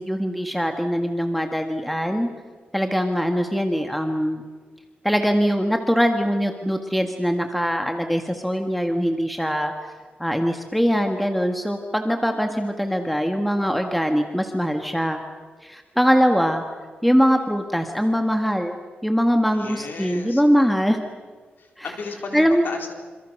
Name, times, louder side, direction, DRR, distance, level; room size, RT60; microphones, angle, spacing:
voice 1, 0.0-2.3 2.7-4.4 5.0-9.9 10.2-15.2 15.6-16.6 17.0-18.8 19.0-21.0 21.8-21.9 22.3-22.7, equal, ahead, 4 dB, 1.7 m, -22 dB
voice 2, 19.5-20.4 21.6-22.9, left 4 dB, 65° left, 3 dB, 4.3 m, -35 dB
27.5 x 27.5 x 6.6 m, 1.5 s
wide cardioid pair, 110°, 4 cm